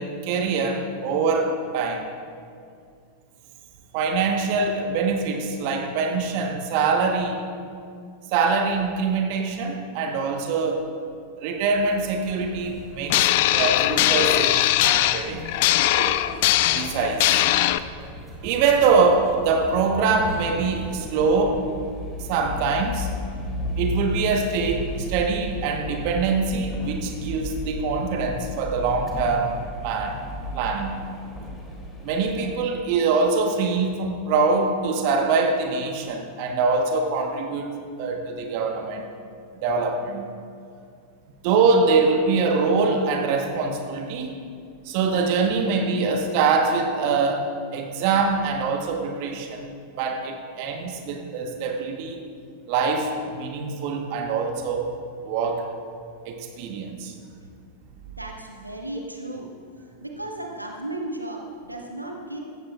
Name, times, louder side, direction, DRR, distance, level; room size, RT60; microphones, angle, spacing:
voice 1, 0.0-2.1 3.9-7.4 8.3-10.9 11.4-15.4 15.9-16.1 16.7-17.4 18.4-21.6 22.3-23.1 23.8-29.5 29.8-30.2 30.5-31.0 32.0-39.1 39.6-40.3 41.4-44.5 44.8-49.7 50.0-52.2 52.7-54.9 55.2-55.7 56.2-57.1, right 4 dB, 45° right, 3 dB, 1.2 m, -24 dB
sound 1, 12.2-21.0, right 1 dB, 15° right, 3.1 m, -41 dB
sound 2, 13.1-17.8, left 15 dB, 50° left, 0.4 m, -20 dB
sound 3, 19.5-32.5, left 1 dB, 10° left, 3.0 m, -33 dB
voice 2, 58.1-59.5 60.0-62.4, right 1 dB, 85° right, 1 dB, 1.3 m, -35 dB
16.5 x 14.0 x 2.4 m, 2.3 s
figure-of-eight pair, 90°, 0 cm